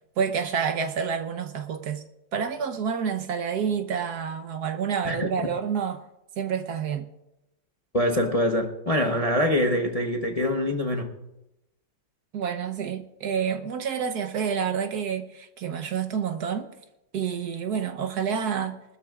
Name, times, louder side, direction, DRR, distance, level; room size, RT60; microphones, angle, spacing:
voice 1, 0.2-2.0 2.3-6.0 6.4-7.1 12.3-16.7 17.1-18.8, right 7 dB, 60° right, 1.4 m, -28 dB
voice 2, 7.9-11.1, left 1 dB, 30° left, 0.7 m, -24 dB
23.5 x 13.0 x 2.4 m
omnidirectional pair, 2.1 m